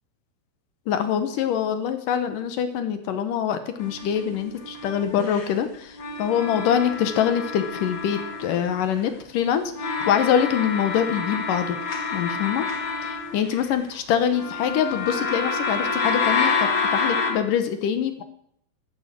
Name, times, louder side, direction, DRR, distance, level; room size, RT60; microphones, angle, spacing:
voice 1, 0.9-11.8 12.1-12.7 13.0-16.5 16.9-18.2, left 8 dB, 65° left, 9 dB, 2.4 m, -24 dB
sound 1, 3.8-5.5 6.0-9.0 9.7-13.9 14.3-17.3, left 4 dB, 40° left, 2.0 m, -28 dB
13.5 x 11.0 x 7.5 m, 0.69 s
omnidirectional pair, 4.7 m